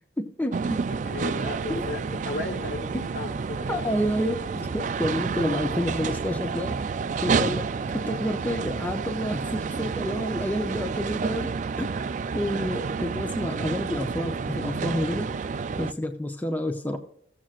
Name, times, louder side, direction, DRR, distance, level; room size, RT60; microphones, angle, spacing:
voice 1, 0.2-0.8 1.7-1.8 2.9-3.0 3.7-6.9 7.2-11.5 11.8-12.0 12.3-15.3 15.8-17.0, equal, 10° left, 4 dB, 0.6 m, -29 dB
sound 1, 0.5-15.9, right 5 dB, 45° right, 0.3 m, -30 dB
voice 2, 0.9-3.8, left 2 dB, 65° left, 2 dB, 1.9 m, -35 dB
17.5 x 7.5 x 2.5 m, 0.69 s
head